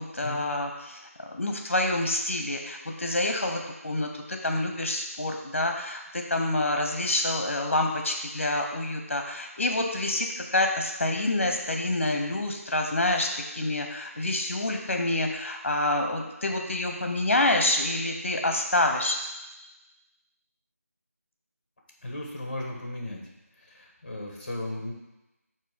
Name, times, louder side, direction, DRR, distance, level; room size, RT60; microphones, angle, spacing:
voice 1, 0.0-19.2, left 2 dB, 55° left, 3 dB, 1.1 m, -27 dB
voice 2, 22.0-23.2 23.7-24.9, left 1 dB, 35° left, 0 dB, 1.5 m, -35 dB
8.6 x 2.9 x 5.3 m, 0.96 s
figure-of-eight pair, 165°, 8 cm